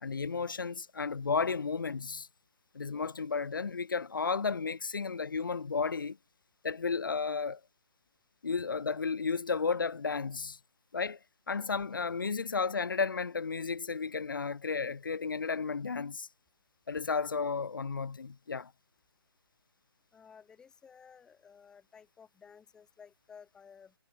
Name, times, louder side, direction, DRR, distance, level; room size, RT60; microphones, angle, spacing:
voice 1, 0.0-2.3 2.7-6.2 6.6-7.6 8.4-10.6 10.9-11.2 11.5-16.3 16.9-18.7, left 5 dB, 60° left, 1.6 m, -33 dB
voice 2, 20.1-23.9, left 6 dB, 5° left, 3.7 m, -55 dB
figure-of-eight pair, 155°, 13 cm